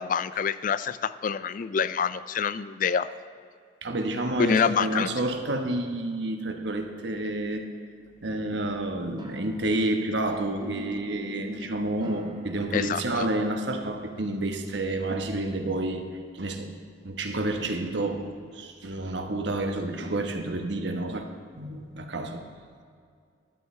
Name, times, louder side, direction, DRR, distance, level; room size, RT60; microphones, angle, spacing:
voice 1, 0.0-3.1 4.4-5.1 12.7-13.0, left 6 dB, 45° left, 14 dB, 0.3 m, -26 dB
voice 2, 3.8-7.7 8.2-16.7 17.0-21.3 21.5-22.4, right 2 dB, 70° right, 5 dB, 1.2 m, -29 dB
sound 1, 9.1-14.3, right 1 dB, 25° right, 1.1 m, -46 dB
13.5 x 12.5 x 3.3 m, 2.2 s
head